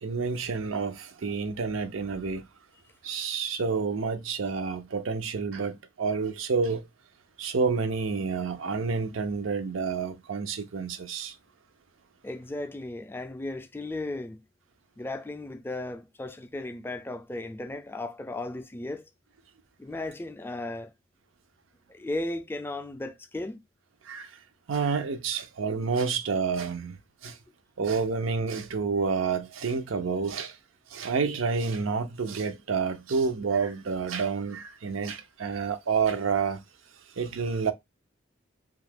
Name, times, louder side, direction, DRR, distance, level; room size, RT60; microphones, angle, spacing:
voice 1, 0.0-2.4 3.0-6.9 7.4-11.4 24.0-24.4 24.7-27.4 27.8-30.6 30.9-36.6 37.2-37.7, right 5 dB, 80° right, 0.5 m, -29 dB
voice 2, 12.2-14.4 15.0-19.1 19.8-20.9 21.9-23.6 27.2-27.3, left 2 dB, 10° left, 0.3 m, -35 dB
2.8 x 2.4 x 3.3 m
head